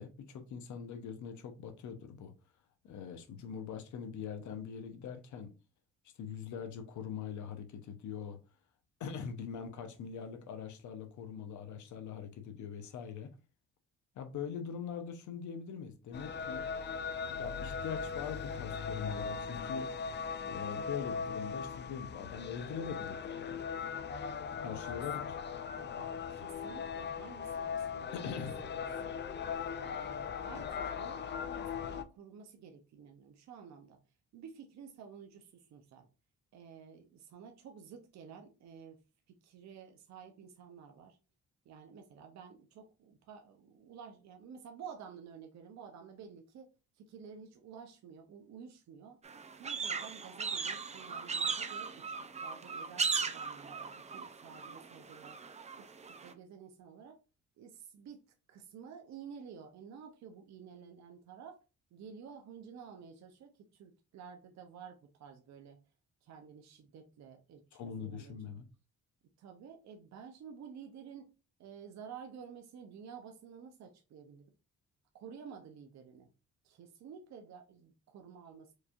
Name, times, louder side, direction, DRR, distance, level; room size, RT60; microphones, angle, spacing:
voice 1, 0.0-2.3 2.8-5.5 6.2-8.4 9.0-13.3 14.2-16.6 17.4-19.9 20.4-23.6 24.6-25.4 28.1-28.6 67.7-68.7, left 7 dB, 70° left, 0.8 m, -42 dB
sound 1, 16.1-32.0, left 6 dB, 35° left, 0.4 m, -39 dB
voice 2, 24.6-25.0 25.8-29.2 29.8-34.0 34.3-36.1 36.5-39.0 39.3-41.2 41.6-46.7 46.9-49.2 49.6-52.0 52.4-55.4 55.8-55.9 56.2-57.2 57.6-58.2 58.5-61.6 61.9-65.8 66.2-68.4 69.4-71.3 71.6-74.5 75.1-76.3 76.6-78.7, right 7 dB, 65° right, 0.7 m, -51 dB
sound 2, 49.2-56.3, right 5 dB, 25° right, 0.5 m, -38 dB
4.7 x 2.7 x 2.4 m
cardioid pair, 90°, 30 cm